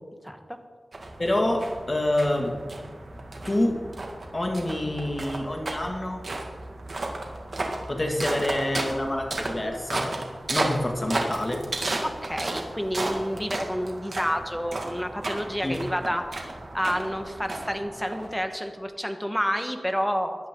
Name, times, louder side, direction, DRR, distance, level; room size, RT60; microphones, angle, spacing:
voice 1, 0.2-0.6 12.0-20.4, equal, 5° left, 6 dB, 1.4 m, -29 dB
sound 1, 0.9-18.6, right 2 dB, 60° right, 2.1 m, -34 dB
voice 2, 1.2-1.6 1.9-2.6 3.4-3.9 4.3-6.3 7.9-10.1 10.5-11.7 15.6-15.8, left 1 dB, 35° left, 1 dB, 2.3 m, -27 dB
17.5 x 11.5 x 3.9 m, 1.5 s
wide cardioid pair, 70°, 0 cm